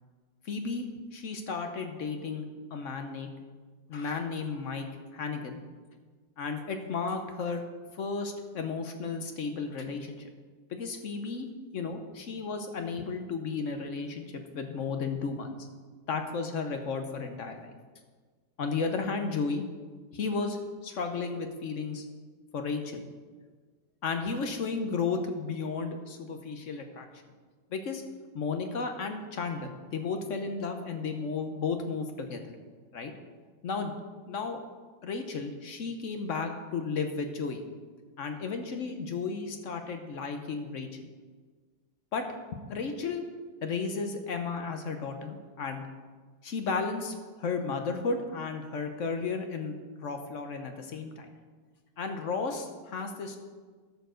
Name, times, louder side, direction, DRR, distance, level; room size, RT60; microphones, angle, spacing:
voice 1, 0.4-0.9 1.1-2.5 2.7-3.3 3.9-4.9 5.1-5.6 6.4-7.6 7.9-10.3 10.7-11.5 11.7-15.6 16.1-17.7 18.6-19.6 20.1-22.0 22.5-23.1 24.0-27.1 27.7-28.0 28.3-32.4 32.9-33.1 33.6-33.9 34.3-34.6 35.0-37.6 38.2-41.1 42.1-42.2 42.7-43.2 43.6-45.8 46.4-51.3 52.0-53.4, left 4 dB, 55° left, 5 dB, 0.9 m, -33 dB
13.0 x 4.6 x 6.3 m, 1.5 s
omnidirectional pair, 2.0 m